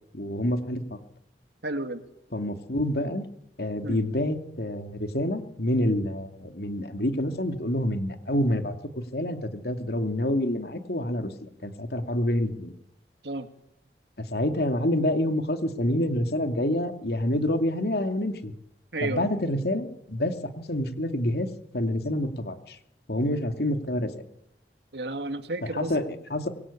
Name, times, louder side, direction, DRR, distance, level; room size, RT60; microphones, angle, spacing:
voice 1, 0.1-1.0 2.3-3.2 3.6-8.8 9.1-12.7 14.2-18.5 19.0-21.5 21.7-22.8 23.1-24.2 25.6-26.5, left 1 dB, 65° left, 6 dB, 2.6 m, -27 dB
voice 2, 1.6-2.0 3.8-4.0 13.2-13.5 18.9-19.3 24.9-25.9, right 2 dB, 80° right, 8 dB, 2.3 m, -32 dB
25.0 x 22.5 x 8.6 m, 0.82 s
head